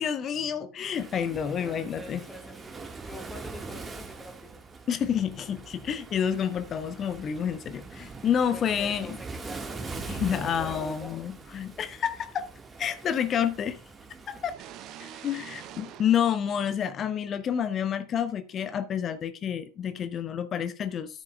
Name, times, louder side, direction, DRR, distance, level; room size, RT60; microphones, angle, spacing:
voice 1, 0.0-2.2 4.9-9.1 10.1-12.5 12.8-13.8 14.3-14.5 15.1-21.2, left 8 dB, 25° left, 0.7 m, -29 dB
Waves surf, 0.9-14.5, right 4 dB, 15° right, 1.5 m, -42 dB
voice 2, 1.4-4.6 8.5-11.2 14.3-14.4, equal, 5° left, 1.7 m, -45 dB
sound 1, 14.5-17.3, right 10 dB, 35° right, 0.9 m, -46 dB
13.0 x 10.5 x 2.2 m
figure-of-eight pair, 90°, 0 cm